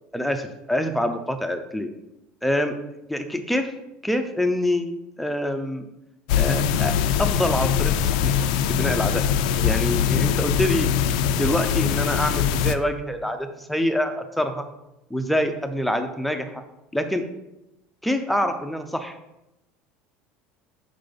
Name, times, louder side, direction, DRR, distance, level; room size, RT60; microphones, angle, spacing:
voice 1, 0.1-1.9 2.4-2.8 3.1-3.7 4.0-4.9 5.2-5.8 6.4-6.9 7.2-9.2 9.6-10.9 11.3-14.7 15.1-16.6 16.9-17.2 18.0-19.2, left 1 dB, ahead, 7 dB, 0.5 m, -25 dB
sound 1, 6.3-12.7, left 8 dB, 90° left, 0.4 m, -22 dB
5.7 x 3.8 x 5.1 m, 0.91 s
cardioid pair, 155°, 4 cm